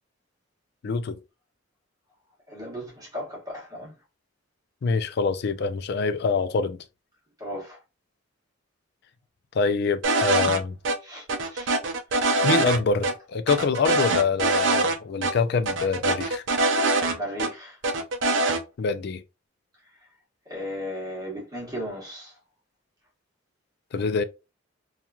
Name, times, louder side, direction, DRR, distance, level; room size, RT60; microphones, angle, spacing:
voice 1, 0.8-1.2 4.8-6.8 9.5-10.7 12.4-16.4 18.8-19.2 23.9-24.2, left 5 dB, 55° left, 0.3 m, -25 dB
voice 2, 2.5-3.9 7.4-7.8 11.1-11.2 11.5-11.7 17.0-17.7 20.5-22.3, equal, 20° right, 1.2 m, -35 dB
sound 1, 10.0-10.6 10.8-11.0 11.3-12.8 13.0-13.1 13.5-15.0 15.2-15.3 15.7-17.5 17.8-18.6, right 2 dB, 65° right, 0.5 m, -23 dB
2.9 x 2.4 x 2.3 m
head